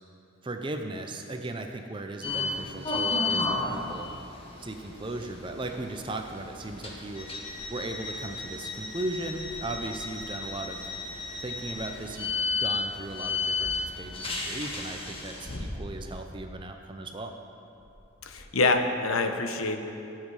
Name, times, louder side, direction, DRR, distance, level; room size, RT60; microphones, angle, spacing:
voice 1, 0.4-4.1 4.6-7.3 7.7-10.9 11.4-17.4, right 2 dB, 25° right, 5 dB, 0.5 m, -37 dB
sound 1, 1.8-1.9 5.6-5.8 6.3-6.6 6.9-7.0 7.4-7.7 8.2-8.3 8.9-9.0 9.4-12.2 13.0-14.7 15.3-16.4 17.7-18.8, left 1 dB, 65° left, 1.5 m, -45 dB
sound 2, 2.2-15.6, left 3 dB, 25° left, 1.5 m, -33 dB
voice 2, 18.2-19.8, left 3 dB, 85° left, 6 dB, 1.0 m, -26 dB
18.0 x 7.4 x 4.8 m, 2.8 s
head